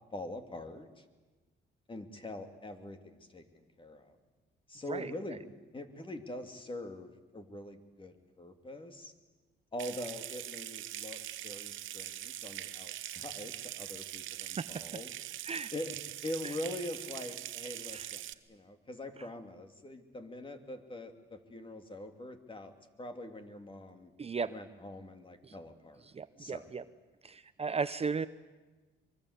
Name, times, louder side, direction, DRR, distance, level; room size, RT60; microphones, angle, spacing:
voice 1, 0.1-1.0 1.9-3.4 3.8-4.2 4.7-5.4 5.7-9.1 9.7-15.1 15.7-16.0 16.2-22.7 23.0-24.1 24.5-26.1 26.4-26.8, left 1 dB, 25° left, 7 dB, 2.9 m, -43 dB
voice 2, 4.9-5.4 14.6-14.8 15.4-15.7 16.4-16.5 17.9-18.1 24.2-24.5 25.4-25.5 26.1-26.8 27.2-28.3, right 5 dB, 30° right, 13 dB, 0.7 m, -36 dB
Water tap faucet / Sink (filling or washing) / Trickle dribble, 9.8-18.3, right 13 dB, 80° right, 1.0 m, -42 dB
23.5 x 23.5 x 8.2 m, 1.2 s
cardioid pair, 90°, 20 cm